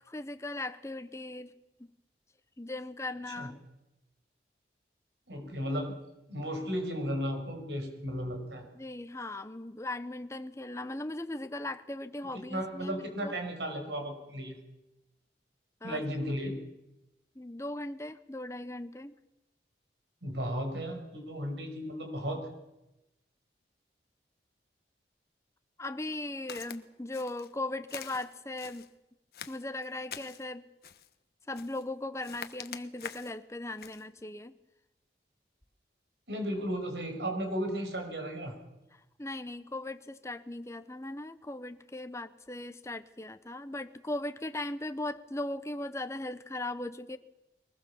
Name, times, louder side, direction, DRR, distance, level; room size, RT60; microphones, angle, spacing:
voice 1, 0.0-1.5 2.6-3.6 8.7-13.3 15.8-16.0 17.4-19.2 25.8-28.9 29.5-30.7 31.5-34.5 38.9-47.2, left 2 dB, 15° left, 10 dB, 0.9 m, -38 dB
voice 2, 5.3-6.0 6.3-8.7 12.5-14.6 15.8-16.6 20.2-22.5 36.3-38.6, equal, 80° right, 5 dB, 5.8 m, -34 dB
Walk footsteps, 26.5-26.8 27.1-27.5 27.9-28.9 29.3-30.5 30.8-31.1 31.5-31.9 32.2-33.4 33.8-34.0, left 7 dB, 60° left, 1.3 m, -45 dB
23.0 x 20.0 x 7.2 m, 0.93 s
head